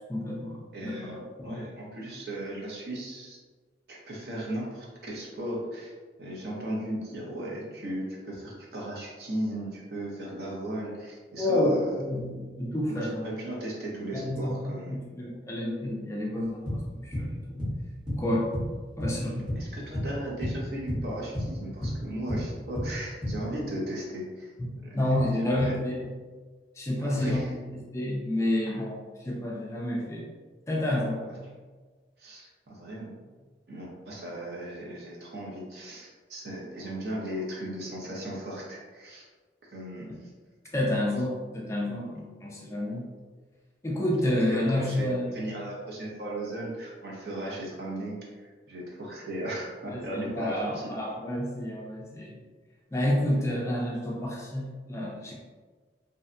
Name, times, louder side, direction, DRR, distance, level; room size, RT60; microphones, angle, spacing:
voice 1, 0.1-1.6 11.4-13.2 14.1-17.7 18.1-18.5 19.0-19.6 24.6-26.1 26.8-27.4 27.9-30.3 30.7-31.2 40.7-43.1 43.8-45.2 49.8-52.4 52.9-55.3, left 1 dB, 15° left, -3 dB, 0.3 m, -29 dB
voice 2, 0.7-3.4 3.9-5.9 6.2-11.9 12.6-15.0 19.6-24.5 24.8-25.0 25.2-25.7 27.0-27.5 32.2-33.3 33.7-39.2 39.6-40.3 44.2-50.9, right 1 dB, 60° right, -4 dB, 0.7 m, -37 dB
sound 1, 16.7-19.6 19.9-20.2 20.4-23.4, left 1 dB, 5° right, 0.8 m, -31 dB
2.7 x 2.2 x 2.5 m, 1.4 s
head